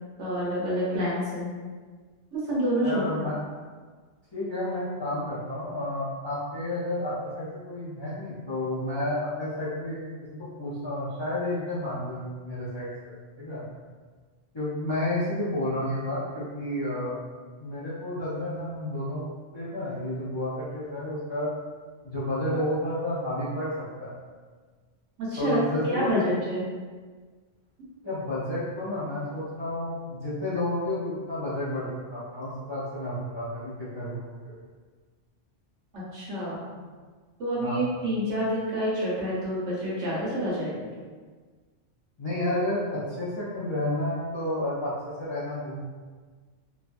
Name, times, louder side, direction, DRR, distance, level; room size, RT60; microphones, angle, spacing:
voice 1, 0.2-1.5 2.3-3.3 25.2-25.6 25.9-26.6 35.9-36.7 37.4-40.9, equal, 85° right, -7 dB, 1.4 m, -28 dB
voice 2, 2.8-3.4 4.3-13.6 14.5-17.2 17.6-19.3 19.5-21.5 22.0-24.1 25.4-26.4 28.0-34.6 37.6-37.8 42.2-45.8, left 1 dB, 35° left, -10 dB, 0.4 m, -31 dB
3.0 x 2.2 x 2.5 m, 1.5 s
omnidirectional pair, 1.2 m